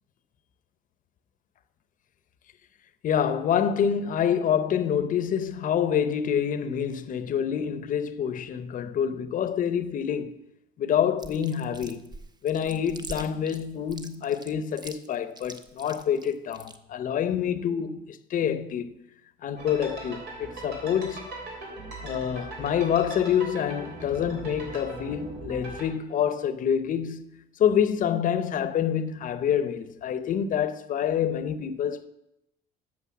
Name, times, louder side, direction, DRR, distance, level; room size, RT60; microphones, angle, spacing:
voice 1, 3.0-10.4 10.8-12.1 12.4-18.9 19.4-21.3 22.0-32.1, left 8 dB, 50° left, 0.8 m, -27 dB
Chewing mastication, 11.2-16.8, right 3 dB, 25° right, 0.8 m, -43 dB
sound 1, 19.6-25.9, right 2 dB, 75° right, 3.2 m, -40 dB
8.5 x 6.6 x 7.2 m
cardioid pair, 110°, 17 cm